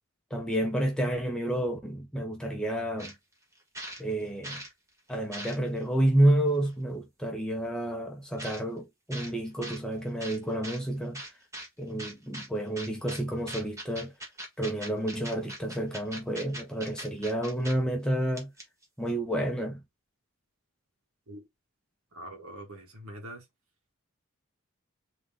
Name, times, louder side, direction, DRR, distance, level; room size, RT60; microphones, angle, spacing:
voice 1, 0.3-3.1 4.0-4.6 5.1-11.2 11.8-14.1 14.6-18.5 19.0-19.8, right 1 dB, 5° left, 1.1 m, -29 dB
sound 1, 3.0-3.1 3.5-4.7 5.1-5.8 6.6-6.7 8.4-8.6 9.1-9.3 9.6-9.8 10.2-10.8 11.1-11.7 12.0-12.5 12.7-13.2 13.5-17.7 18.0-18.1 18.4-18.8, right 1 dB, 15° right, 1.7 m, -40 dB
voice 2, 22.1-23.5, right 1 dB, 80° right, 2.2 m, -44 dB
3.9 x 3.7 x 3.5 m
head